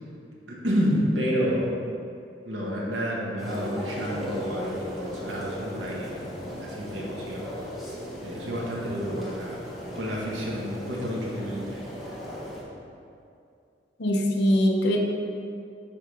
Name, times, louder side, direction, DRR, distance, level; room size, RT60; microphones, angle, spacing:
voice 1, 0.5-1.8 2.4-7.8 8.2-9.6 9.9-11.8, equal, 85° right, -4 dB, 1.6 m, -30 dB
sound 1, 3.4-12.6, equal, ahead, 1.5 m, -37 dB
voice 2, 14.0-15.0, equal, 65° left, 1 dB, 0.8 m, -22 dB
9.8 x 3.8 x 5.1 m, 2.5 s
head